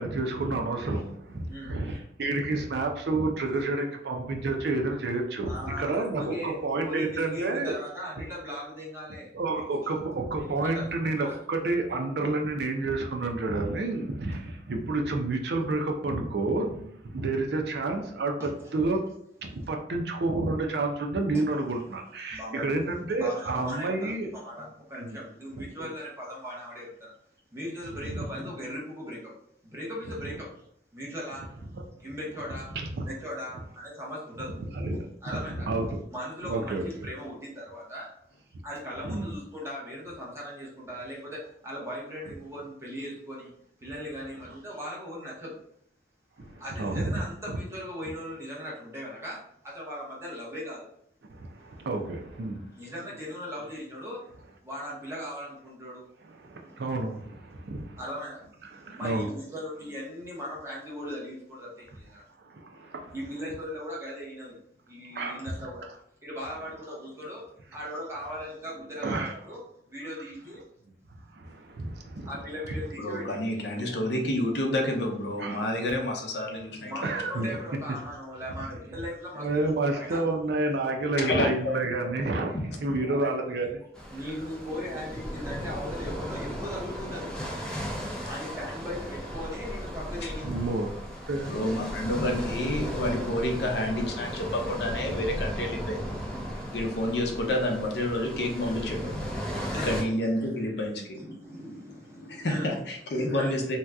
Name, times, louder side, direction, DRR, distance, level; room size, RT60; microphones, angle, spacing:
voice 1, 0.0-7.8 9.3-19.0 19.4-24.3 25.1-25.2 28.1-28.2 31.7-31.8 32.8-33.1 34.7-35.1 35.3-35.4 35.7-36.0 36.4-36.8 39.0-39.3 46.4-47.1 51.3-52.6 56.3-58.0 58.6-59.3 62.5-63.1 65.1-65.4 69.0-69.3 71.3-72.3 75.4-75.6 77.0-77.6 79.4-82.5 82.8-83.8 90.4-91.5, right 2 dB, 70° right, 3 dB, 0.5 m, -30 dB
voice 2, 5.4-10.1 10.4-11.4 18.4-18.5 21.3-21.4 22.3-22.7 23.2-27.1 27.5-29.3 29.6-30.6 30.9-31.7 32.0-32.8 33.1-34.5 35.2-35.7 36.1-38.1 38.6-43.5 43.8-45.6 46.6-50.9 52.7-54.2 54.6-56.1 56.6-56.9 58.0-58.5 58.9-62.3 63.1-64.6 64.9-65.9 66.2-67.4 67.7-69.6 69.9-70.7 72.2-73.5 76.8-80.2 83.1-83.3 84.1-87.3 88.2-90.5 91.5-91.6 99.7-100.0 101.1-102.7 103.2-103.6, equal, 15° right, -5 dB, 0.9 m, -38 dB
voice 3, 73.0-77.3 81.2-81.8 90.2-90.3 91.5-96.3 96.7-99.2 99.8-101.2 102.2-103.8, left 1 dB, 75° left, 2 dB, 0.6 m, -29 dB
sound 1, 83.9-100.0, equal, 5° left, 0.5 m, -36 dB
2.8 x 2.3 x 3.4 m, 0.70 s
head